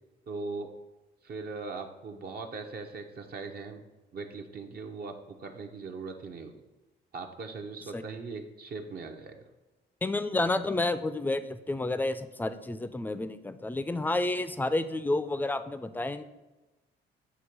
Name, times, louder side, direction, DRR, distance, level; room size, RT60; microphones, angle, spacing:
voice 1, 0.3-0.7 1.2-3.8 4.1-5.1 5.4-6.6 7.1-9.4, right 4 dB, 50° right, 3 dB, 0.8 m, -40 dB
voice 2, 10.0-16.2, left 2 dB, 10° left, 11 dB, 0.4 m, -30 dB
7.9 x 2.8 x 6.0 m, 1.1 s
cardioid pair, 90°, 20 cm